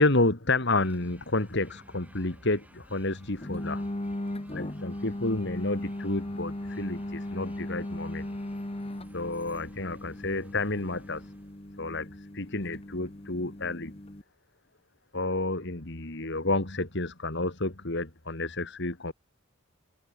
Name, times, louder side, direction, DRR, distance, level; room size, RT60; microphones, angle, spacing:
voice 1, 0.0-3.8 4.5-8.3 9.1-11.3 11.8-13.9 15.1-19.1, left 2 dB, 60° left, 2.6 m, -30 dB
sound 1, 0.8-11.6, equal, 5° right, 7.8 m, -55 dB
sound 2, 3.4-14.2, left 1 dB, 30° left, 1.3 m, -38 dB
head